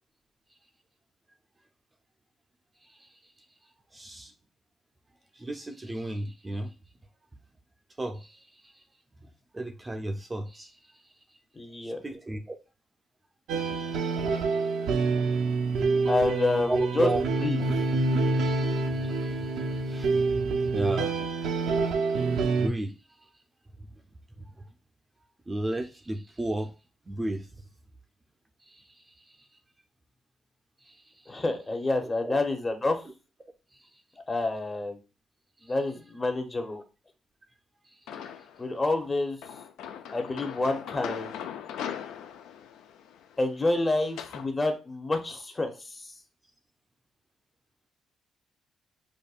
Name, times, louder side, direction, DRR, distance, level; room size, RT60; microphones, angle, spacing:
voice 1, 2.8-3.2 3.9-4.3 5.3-6.7 8.0-8.8 9.2-11.1 11.8-12.6 13.5-14.1 14.5-14.6 16.7-17.2 18.9-21.1 22.4-23.3 23.9-24.0 24.5-24.7 25.5-26.7 27.1-27.5 28.6-29.5 30.8-31.4 32.0-32.4 33.7-33.9 35.6-35.7 37.8-38.3, right 1 dB, 20° right, 0.4 m, -35 dB
voice 2, 11.6-12.0 16.1-17.1 17.4-17.6 31.3-33.0 34.3-35.0 35.6-36.8 38.6-39.4 40.1-41.3 43.4-46.1, left 2 dB, 25° left, 0.7 m, -28 dB
sound 1, 13.5-22.7, right 3 dB, 80° right, 0.4 m, -27 dB
sound 2, 38.1-38.7 39.4-44.5, left 8 dB, 90° left, 0.3 m, -40 dB
5.1 x 2.2 x 2.4 m
cardioid pair, 90°, 0 cm